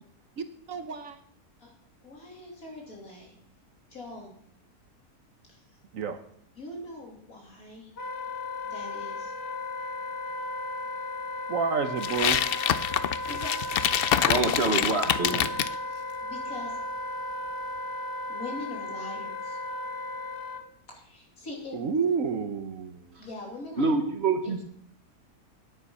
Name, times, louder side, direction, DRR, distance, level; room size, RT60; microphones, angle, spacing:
voice 1, 0.4-1.2 5.9-6.2 11.5-12.4 21.7-23.0, right 6 dB, 65° right, 9 dB, 1.2 m, -29 dB
voice 2, 2.0-3.3 3.9-4.3 5.5-5.6 6.6-7.9 8.6-9.3 13.3-13.5 15.2-15.4 15.9-16.7 18.3-19.6 20.9-21.9 23.2-23.9 24.4-24.5, left 2 dB, 65° left, -1 dB, 3.4 m, -42 dB
Wind instrument woodwind instrument, 8.0-20.6, left 2 dB, 45° left, 1.3 m, -35 dB
sound 1, 12.0-15.7, left 9 dB, 90° left, 0.5 m, -26 dB
voice 3, 14.3-15.3 23.8-24.6, right 3 dB, 45° right, 5 dB, 1.4 m, -26 dB
9.5 x 9.4 x 5.4 m, 0.66 s
omnidirectional pair, 1.6 m